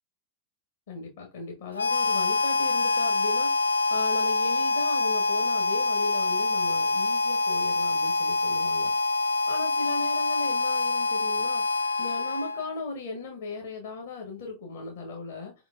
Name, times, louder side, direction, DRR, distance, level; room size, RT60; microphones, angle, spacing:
voice 1, 0.9-8.9 9.2-11.6 12.0-15.5, left 3 dB, 60° left, 1.1 m, -37 dB
Harmonica, 1.7-12.8, left 3 dB, 75° left, 0.3 m, -25 dB
4.9 x 3.6 x 2.3 m
figure-of-eight pair, 90°, 0 cm